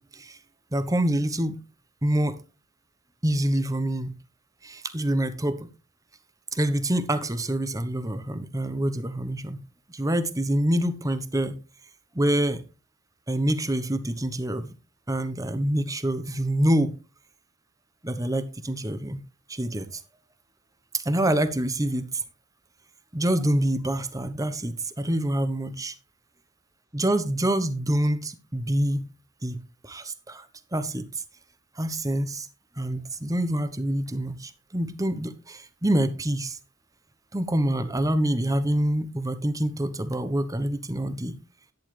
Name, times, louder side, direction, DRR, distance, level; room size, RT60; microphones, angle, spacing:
voice 1, 0.7-1.6 2.0-2.4 3.2-4.1 4.6-5.7 6.5-9.6 9.9-11.5 12.1-12.6 13.3-14.7 15.1-17.0 18.0-19.2 19.5-20.0 20.9-22.2 23.1-25.9 26.9-29.0 29.4-30.4 30.7-31.0 31.8-32.5 32.8-36.6 37.3-41.3, right 1 dB, 15° right, 1.0 m, -26 dB
11.0 x 10.5 x 3.3 m
head